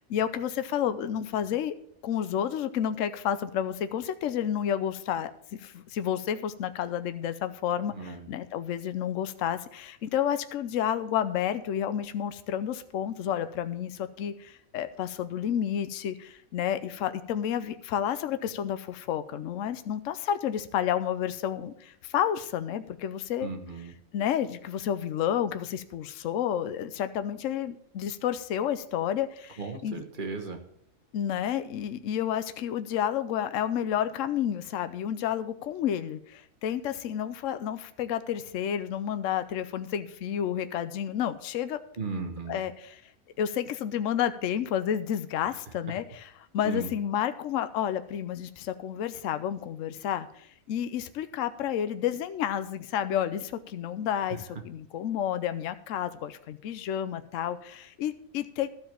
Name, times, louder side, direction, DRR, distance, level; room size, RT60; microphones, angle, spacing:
voice 1, 0.0-1.7 2.0-23.5 24.1-30.0 31.1-41.8 42.5-43.0 43.4-58.7, left 9 dB, 70° left, 11 dB, 1.0 m, -30 dB
voice 2, 7.9-8.3 23.4-23.9 29.6-30.6 42.0-42.6 46.6-46.9, right 4 dB, 35° right, 5 dB, 1.4 m, -36 dB
12.5 x 5.0 x 7.4 m, 0.66 s
omnidirectional pair, 1.5 m